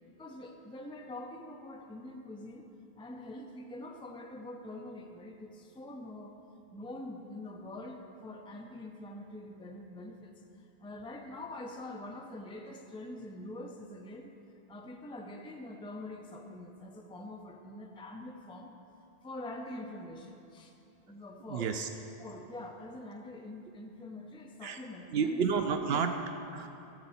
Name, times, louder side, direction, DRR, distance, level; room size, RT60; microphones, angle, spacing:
voice 1, 0.1-2.7 3.0-6.4 6.7-14.3 14.7-18.8 19.2-20.7 21.1-21.7 22.2-25.6, left 1 dB, 5° left, 2 dB, 0.6 m, -45 dB
voice 2, 21.5-21.9 24.6-24.8 25.1-26.7, right 5 dB, 75° right, 7 dB, 0.8 m, -31 dB
14.0 x 7.9 x 4.2 m, 2.9 s
omnidirectional pair, 1.0 m